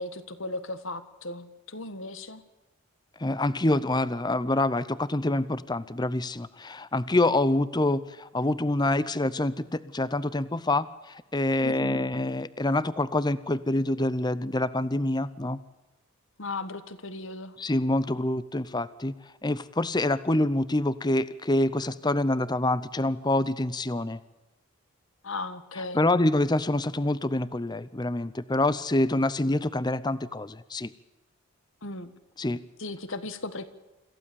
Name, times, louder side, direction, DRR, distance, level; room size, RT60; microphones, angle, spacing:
voice 1, 0.0-2.4 11.6-12.0 16.4-17.6 25.2-26.1 31.8-32.1 32.8-33.7, left 2 dB, 60° left, 12 dB, 1.5 m, -36 dB
voice 2, 3.2-15.6 17.6-19.1 19.4-24.2 25.9-30.9 32.4-32.6, left 2 dB, 20° left, 16 dB, 0.6 m, -26 dB
26.5 x 15.0 x 7.1 m, 1.1 s
head